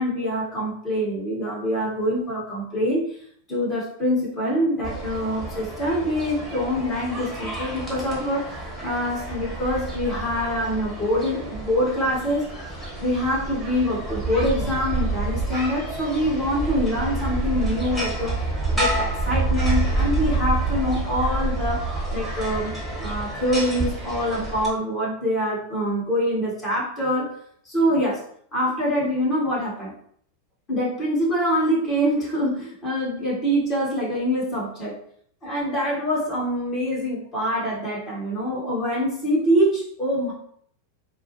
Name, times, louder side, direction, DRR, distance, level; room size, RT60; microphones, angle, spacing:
voice 1, 0.0-3.1 3.5-12.4 13.0-18.4 18.7-21.9 22.1-22.7 23.0-27.3 27.6-28.2 28.5-29.9 30.7-34.9 35.4-40.3, equal, 30° left, -6 dB, 1.4 m, -25 dB
sound 1, 4.8-24.7, right 2 dB, 10° left, 1.2 m, -28 dB
4.2 x 2.1 x 3.0 m, 0.62 s
figure-of-eight pair, 90°, 0 cm